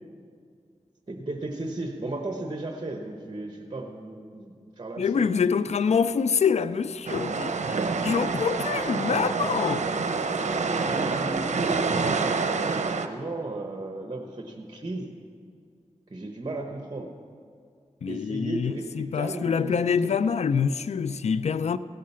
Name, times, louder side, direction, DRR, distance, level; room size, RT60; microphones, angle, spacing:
voice 1, 1.1-5.3 8.7-9.3 10.3-11.8 12.9-15.1 16.1-17.1 18.1-19.7 20.0-20.1, right 2 dB, 40° right, 1.1 m, -35 dB
voice 2, 5.0-7.8 8.0-9.9 18.0-21.8, left 6 dB, 70° left, 0.4 m, -25 dB
sound 1, 7.1-13.1, right 4 dB, 75° right, 0.7 m, -27 dB
16.5 x 7.6 x 5.7 m
cardioid pair, 45°, 12 cm